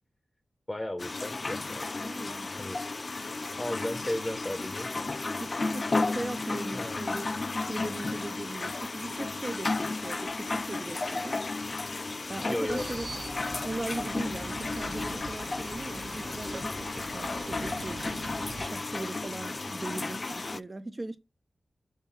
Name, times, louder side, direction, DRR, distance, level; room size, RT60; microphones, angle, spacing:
voice 1, 0.7-1.9 2.6-2.8 3.1-4.9 6.7-7.0 12.5-12.8, left 1 dB, 20° left, 0.7 m, -35 dB
sound 1, 1.0-20.6, left 3 dB, 45° left, 0.4 m, -33 dB
voice 2, 2.0-2.6 5.4-11.4 12.3-13.1 13.6-18.2 18.6-21.2, right 2 dB, 30° right, 0.5 m, -39 dB
sound 2, 12.7-18.7, right 3 dB, 60° right, 0.8 m, -42 dB
5.8 x 3.4 x 5.7 m
cardioid pair, 65°, 0 cm